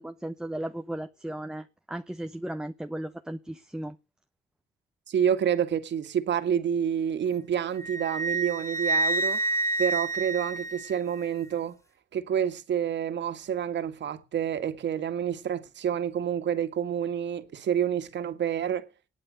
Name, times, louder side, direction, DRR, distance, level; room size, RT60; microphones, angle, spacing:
voice 1, 0.0-4.0, right 1 dB, 5° right, 0.8 m, -36 dB
voice 2, 5.1-9.4 9.8-11.8 12.1-18.9, right 8 dB, 65° right, 2.2 m, -28 dB
Wind instrument woodwind instrument, 7.8-11.3, right 2 dB, 15° left, 2.1 m, -28 dB
19.5 x 9.0 x 5.4 m
cardioid pair, 90°, 20 cm